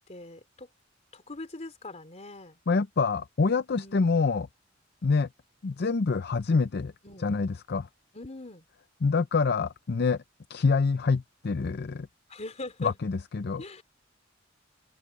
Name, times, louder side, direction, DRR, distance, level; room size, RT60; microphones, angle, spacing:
voice 1, 0.1-0.7 1.1-2.6 3.7-4.2 7.0-7.3 8.1-8.6 12.3-13.0 13.6-13.8, left 2 dB, 35° left, 3.3 m, -42 dB
voice 2, 2.7-4.5 5.0-5.3 5.6-6.9 7.2-7.9 9.0-10.2 10.5-12.1 12.8-13.6, left 4 dB, 55° left, 0.6 m, -26 dB
head